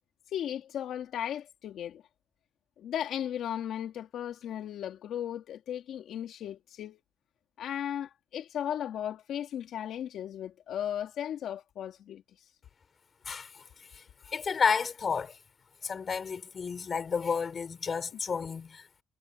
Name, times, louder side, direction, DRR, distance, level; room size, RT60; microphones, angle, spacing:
voice 1, 0.3-2.0 2.8-7.0 7.6-12.2, left 10 dB, 75° left, 2.4 m, -36 dB
voice 2, 13.2-15.4 15.8-19.0, left 6 dB, 45° left, 3.0 m, -32 dB
cardioid pair, 90°, 0 cm